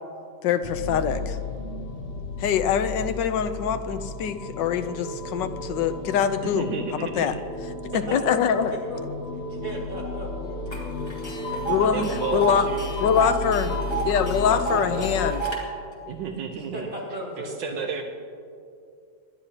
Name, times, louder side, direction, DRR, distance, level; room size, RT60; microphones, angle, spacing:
voice 1, 0.4-1.4 2.4-6.7 7.2-7.3 8.1-8.7 11.7-12.1 12.3-12.7 13.0-13.7 14.1-15.4, left 8 dB, 75° left, 10 dB, 1.3 m, -24 dB
sound 1, 0.6-15.3, left 2 dB, 45° left, 0.8 m, -34 dB
voice 2, 6.4-7.4 11.9-12.9 16.1-16.9 17.4-18.0, right 6 dB, 75° right, 3 dB, 1.4 m, -32 dB
voice 3, 7.9-9.0 9.5-11.1 11.4-12.3 14.6-15.1 16.7-18.0, equal, 45° right, -5 dB, 4.3 m, -36 dB
Tick, 10.7-10.8 11.1-15.6, right 3 dB, 15° left, 2.4 m, -31 dB
26.5 x 11.5 x 2.9 m, 2.5 s
omnidirectional pair, 2.0 m